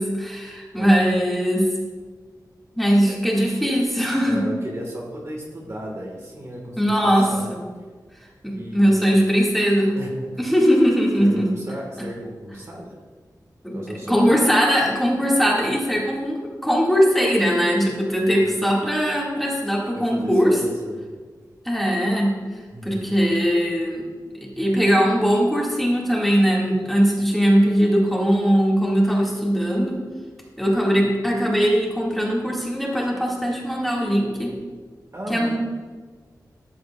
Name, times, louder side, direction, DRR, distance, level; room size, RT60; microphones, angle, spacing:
voice 1, 0.0-1.7 2.8-4.4 6.8-7.6 8.4-10.0 10.4-11.5 13.6-13.8 14.0-20.6 21.7-22.3 22.8-24.0 24.6-30.0 30.6-34.5 35.3-35.6, equal, ahead, -4 dB, 1.8 m, -20 dB
voice 2, 4.3-7.5 8.5-9.2 9.9-10.4 11.2-12.9 13.7-14.3 18.2-18.6 19.9-21.1 22.7-23.2 35.1-35.6, equal, 45° right, -1 dB, 1.5 m, -35 dB
13.0 x 7.8 x 2.3 m, 1.5 s
wide cardioid pair, 120°, 7 cm